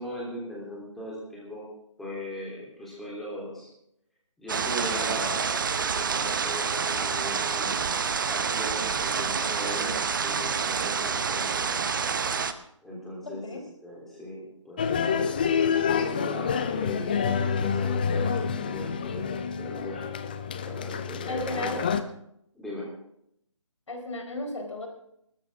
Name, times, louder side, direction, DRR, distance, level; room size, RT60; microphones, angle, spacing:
voice 1, 0.0-1.7 2.0-3.7 4.4-7.9 8.3-11.9 12.8-15.0 15.8-20.1 20.6-21.9 22.5-22.9, left 1 dB, ahead, -6 dB, 3.4 m, -39 dB
sound 1, 4.5-12.5, right 6 dB, 40° right, 0.9 m, -28 dB
voice 2, 13.3-13.6 21.3-21.8 23.9-24.9, left 2 dB, 65° left, 3 dB, 4.5 m, -34 dB
sound 2, 14.8-22.0, left 6 dB, 15° left, 0.5 m, -28 dB
20.0 x 13.0 x 3.7 m, 0.73 s
figure-of-eight pair, 160°, 17 cm